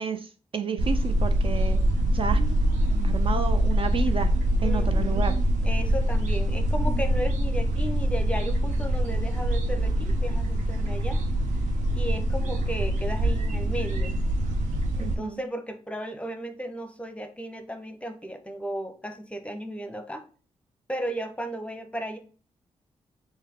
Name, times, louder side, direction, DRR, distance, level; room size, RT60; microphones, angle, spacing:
voice 1, 0.0-1.8 2.1-2.4 3.0-4.3 4.6-5.4 15.0-15.4, right 6 dB, 45° right, 8 dB, 0.4 m, -31 dB
sound 1, 0.8-15.2, equal, 85° right, 0.7 m, -24 dB
voice 2, 4.6-5.3 5.6-11.2 11.9-14.2 15.0-20.2 20.9-22.2, right 1 dB, 10° left, 7 dB, 0.7 m, -35 dB
3.5 x 2.6 x 3.5 m, 0.38 s
cardioid pair, 55°, 13 cm